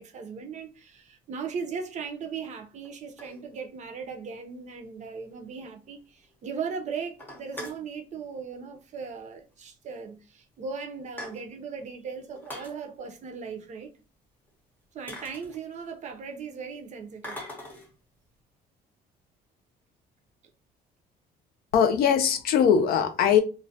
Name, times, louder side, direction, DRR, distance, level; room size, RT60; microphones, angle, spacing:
voice 1, 0.0-13.9 14.9-17.4, right 5 dB, 45° right, 0.5 m, -38 dB
sound 1, 0.9-1.1 1.9-2.0 2.8-3.9 4.3-4.4 4.6-4.7 5.1-5.2 5.5-5.6 5.9-6.4 6.7-6.8 7.1-7.9 9.0-9.2 9.5-9.6 10.3-10.4 10.7-11.7 12.3-12.8 14.5-14.6 15.1-16.1 17.2-18.0, left 1 dB, 10° left, 0.7 m, -42 dB
voice 2, 21.7-23.4, left 8 dB, 65° left, 0.4 m, -21 dB
2.3 x 2.0 x 2.6 m
cardioid pair, 110°, 17 cm